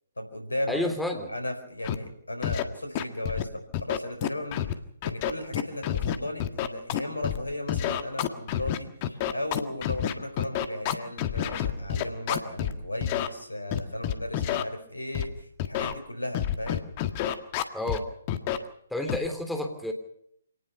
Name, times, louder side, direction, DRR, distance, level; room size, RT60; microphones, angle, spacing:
voice 1, 0.2-0.9 1.3-4.6 5.0-16.9, left 1 dB, 75° left, 6 dB, 4.6 m, -35 dB
voice 2, 0.7-1.3 17.7-18.1 18.9-19.9, left 1 dB, ahead, 4 dB, 3.3 m, -30 dB
Scratching (performance technique), 1.8-1.9 2.4-2.6 2.9-3.4 3.7-4.7 5.0-7.4 7.7-12.7 13.0-13.3 13.7-14.6 15.1-15.3 15.6-15.9 16.3-18.0 18.3-18.6 19.1-19.3, left 11 dB, 30° left, 1.7 m, -28 dB
26.5 x 19.0 x 5.6 m, 0.71 s
figure-of-eight pair, 135°, 0 cm